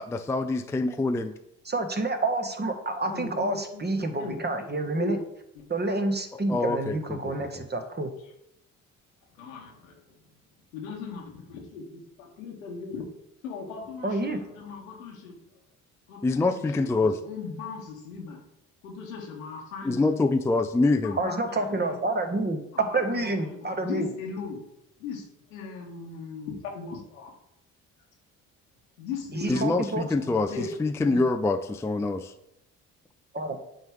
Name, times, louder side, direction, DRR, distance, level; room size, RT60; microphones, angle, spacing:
voice 1, 0.0-1.3 6.5-7.5 16.2-17.2 19.8-21.2 29.5-32.3, left 3 dB, 5° left, 7 dB, 0.4 m, -25 dB
voice 2, 1.6-5.2 5.7-8.1 14.0-14.4 21.2-24.1 29.3-30.1 33.3-33.6, right 2 dB, 25° right, 6 dB, 1.2 m, -28 dB
voice 3, 3.0-5.2 5.5-5.6 9.4-10.0 10.7-13.0 13.4-15.4 16.1-18.4 18.8-20.3 21.0-22.2 22.7-24.6 25.0-27.3 29.0-29.8 30.2-30.7 31.0-31.2, left 4 dB, 90° left, 0 dB, 1.3 m, -38 dB
8.9 x 3.3 x 3.5 m, 0.81 s
hypercardioid pair, 50°, 39 cm